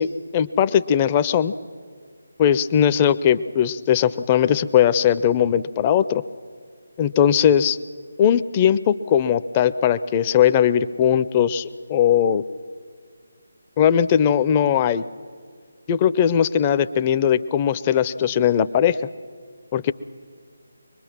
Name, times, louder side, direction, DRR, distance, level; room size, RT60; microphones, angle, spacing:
voice 1, 0.0-1.5 2.4-6.2 7.0-7.8 8.2-12.4 13.8-15.0 15.9-19.0 19.7-19.9, left 9 dB, 20° left, 13 dB, 0.5 m, -19 dB
24.0 x 20.5 x 6.0 m, 2.1 s
figure-of-eight pair, 150°, 0 cm